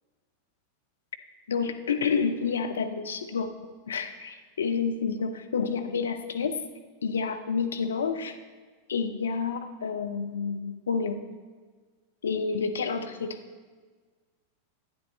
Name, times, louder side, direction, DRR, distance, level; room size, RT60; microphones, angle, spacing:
voice 1, 1.5-6.6 7.0-8.4 8.9-11.2 12.2-13.4, left 5 dB, 65° left, 7 dB, 0.7 m, -29 dB
11.5 x 9.4 x 3.1 m, 1.5 s
figure-of-eight pair, 90°, 0 cm